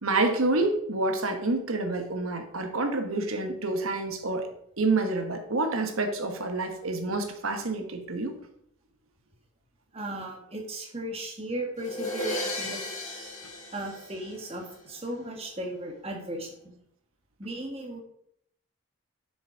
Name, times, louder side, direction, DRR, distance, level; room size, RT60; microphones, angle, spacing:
voice 1, 0.0-8.4, right 2 dB, 85° right, 6 dB, 1.3 m, -28 dB
voice 2, 9.9-12.8 13.7-16.7 17.4-18.0, right 1 dB, 30° right, 1 dB, 1.7 m, -36 dB
sound 1, 11.8-14.7, left 1 dB, 35° left, 2.3 m, -35 dB
7.1 x 6.2 x 5.1 m, 0.70 s
head